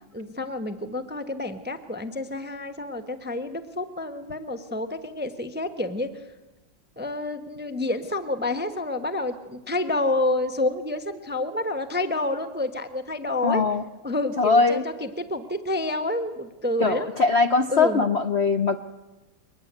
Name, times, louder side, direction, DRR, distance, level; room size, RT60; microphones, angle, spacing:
voice 1, 0.1-6.1 7.0-13.6 14.0-17.1 17.7-18.1, left 2 dB, 10° right, 8 dB, 0.7 m, -29 dB
voice 2, 13.4-13.8 14.4-14.8 16.8-18.8, left 4 dB, 50° left, 8 dB, 0.8 m, -21 dB
23.0 x 20.0 x 8.1 m, 1.1 s
omnidirectional pair, 2.1 m